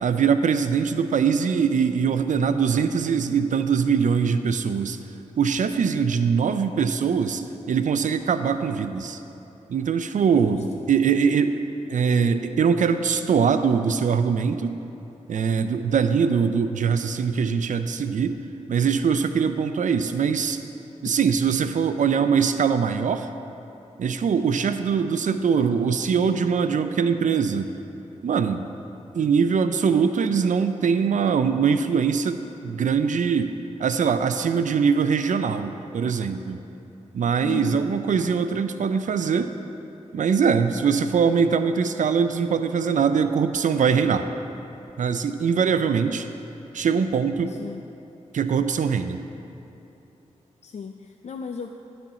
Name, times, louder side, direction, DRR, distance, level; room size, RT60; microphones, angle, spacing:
voice 1, 0.0-5.0 5.4-9.2 9.7-11.6 11.9-14.8 15.3-18.4 18.7-20.6 21.0-23.3 24.0-27.7 28.2-28.6 29.1-32.4 32.6-33.5 33.8-36.6 37.1-39.5 40.1-44.3 45.0-46.3 46.7-47.5 48.3-49.2, right 6 dB, 75° right, 9 dB, 0.5 m, -22 dB
voice 2, 37.4-37.9 47.5-47.8 50.6-51.7, left 6 dB, 55° left, 4 dB, 0.4 m, -35 dB
9.7 x 4.5 x 6.8 m, 2.9 s
cardioid pair, 50°, 13 cm